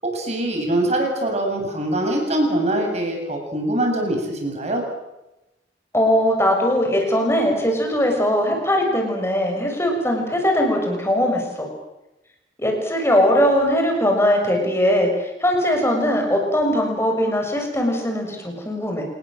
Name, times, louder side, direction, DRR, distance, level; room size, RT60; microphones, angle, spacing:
voice 1, 0.0-4.8, right 1 dB, 35° right, 2 dB, 7.8 m, -23 dB
voice 2, 5.9-11.7 12.6-19.0, equal, 15° left, 2 dB, 6.6 m, -20 dB
27.5 x 20.5 x 7.7 m, 0.94 s
head